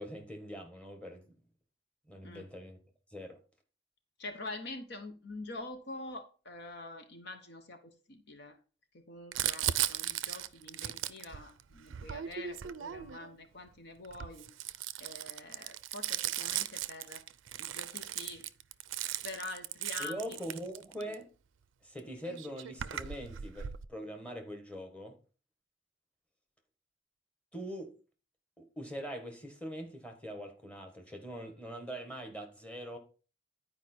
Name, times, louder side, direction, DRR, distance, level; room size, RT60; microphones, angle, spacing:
voice 1, 0.0-1.3 2.1-2.8 3.1-3.4 20.0-21.3 21.8-25.1 27.5-27.9 28.6-33.0, equal, 5° left, 1.5 m, -43 dB
voice 2, 4.2-8.6 8.9-14.5 15.0-17.2 17.6-18.5 19.2-20.4, left 2 dB, 60° left, 1.0 m, -45 dB
Crumpling crinkling, 9.3-13.4 14.0-21.1 22.0-22.1 22.3-23.8, right 12 dB, 85° right, 0.4 m, -37 dB
10.5 x 4.9 x 4.4 m
head